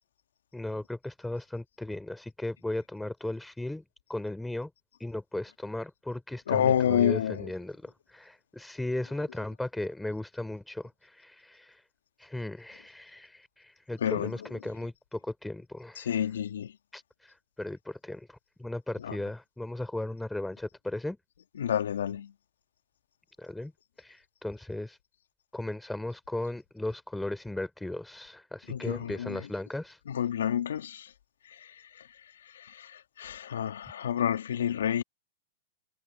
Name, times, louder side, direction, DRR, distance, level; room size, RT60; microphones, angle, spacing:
voice 1, 0.5-3.8 4.1-4.7 5.0-11.8 12.2-16.2 16.9-21.2 23.4-23.7 24.0-25.0 25.5-30.0, left 1 dB, 5° left, 3.5 m, -36 dB
voice 2, 6.5-7.5 14.0-14.3 16.0-16.7 19.0-19.2 21.6-22.3 28.7-29.5 30.1-31.1 31.4-32.1 32.4-35.0, left 9 dB, 75° left, 2.1 m, -29 dB
hypercardioid pair, 105°, 0 cm